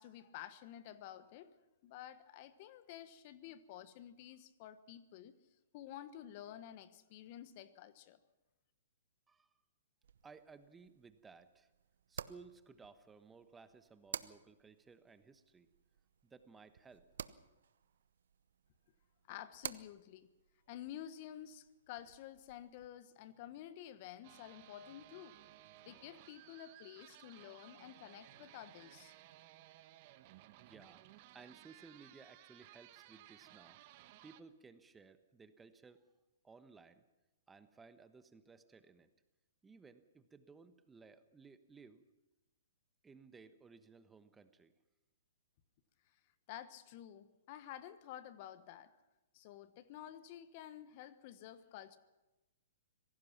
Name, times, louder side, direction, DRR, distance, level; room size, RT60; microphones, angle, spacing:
voice 1, 0.0-1.5 1.8-5.4 5.7-8.2 19.3-20.3 20.7-25.4 25.8-29.1 46.5-48.9 49.3-52.0, left 11 dB, 45° left, 13 dB, 1.3 m, -51 dB
sound 1, 10.0-22.9, right 8 dB, 70° right, 0.8 m, -53 dB
voice 2, 10.2-11.7 12.1-15.7 16.2-17.0 30.6-31.1 31.3-33.8 34.2-36.1 36.4-37.0 37.5-39.1 39.6-42.0 43.0-44.7, right 4 dB, 10° right, 11 dB, 1.1 m, -59 dB
sound 2, 24.2-34.4, right 15 dB, 45° right, 1.2 m, -59 dB
25.5 x 17.5 x 5.9 m, 1.0 s
hypercardioid pair, 125°, 0 cm